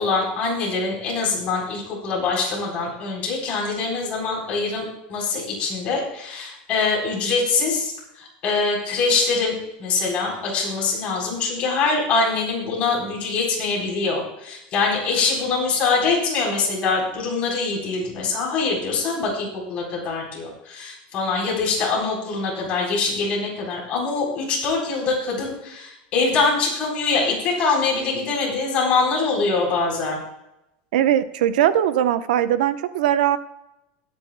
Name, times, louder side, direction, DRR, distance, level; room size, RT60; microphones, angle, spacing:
voice 1, 0.0-7.9 8.2-30.2, left 4 dB, 30° left, -2 dB, 4.0 m, -24 dB
voice 2, 30.9-33.4, right 11 dB, 80° right, 12 dB, 0.8 m, -20 dB
22.0 x 9.0 x 2.2 m, 0.88 s
supercardioid pair, 175°, 5 cm